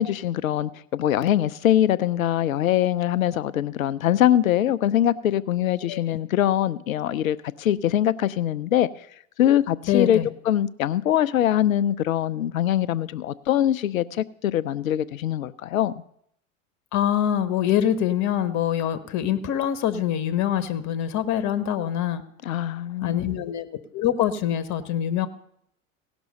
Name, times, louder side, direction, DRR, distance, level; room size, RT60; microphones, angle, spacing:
voice 1, 0.0-8.9 9.4-10.2 10.5-15.9 22.5-23.3, left 11 dB, 85° left, 0.6 m, -23 dB
voice 2, 5.9-6.2 9.9-10.3 16.9-22.2 23.0-23.7 23.9-25.3, left 10 dB, 45° left, 1.1 m, -24 dB
17.5 x 6.1 x 5.3 m
hypercardioid pair, 80°, 40 cm